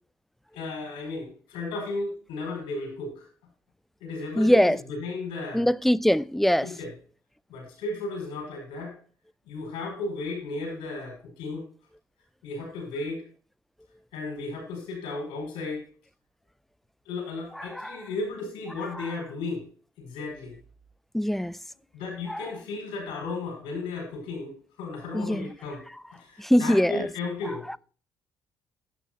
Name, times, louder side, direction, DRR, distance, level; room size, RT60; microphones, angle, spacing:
voice 1, 0.5-3.2 4.0-5.7 6.6-6.9 7.5-8.9 9.5-11.7 12.4-13.2 14.1-15.9 17.1-19.6 20.0-20.6 21.9-25.8 26.1-27.6, left 3 dB, 60° left, 4.8 m, -34 dB
voice 2, 4.4-4.8 5.5-6.7 17.6-18.0 19.0-19.1 21.1-21.6 22.3-22.4 25.1-25.5 26.4-27.1 27.7-27.8, equal, ahead, 0.3 m, -23 dB
12.0 x 8.4 x 2.5 m
figure-of-eight pair, 45°, 10 cm